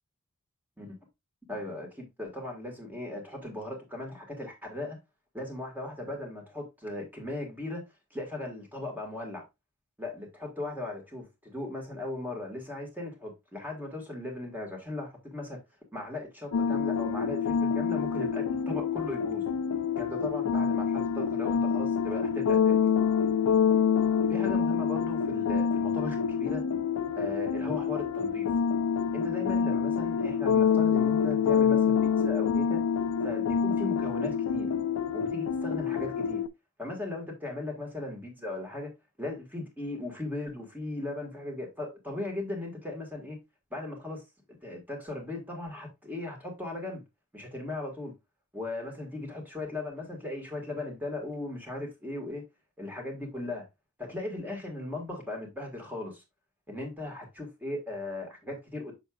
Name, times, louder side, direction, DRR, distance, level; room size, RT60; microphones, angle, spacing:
voice 1, 1.5-5.0 5.3-7.8 8.1-9.4 10.0-15.6 15.9-19.4 20.0-22.9 24.3-26.6 27.2-28.5 29.1-32.8 33.2-34.7 35.1-36.4 36.8-38.9 39.2-43.4 43.7-44.2 44.6-47.0 47.3-48.1 48.5-52.4 52.8-53.6 54.0-56.2 56.7-58.9, left 2 dB, 10° right, 1.7 m, -37 dB
sound 1, 16.5-36.5, left 7 dB, 80° left, 0.5 m, -27 dB
6.8 x 5.9 x 2.3 m
head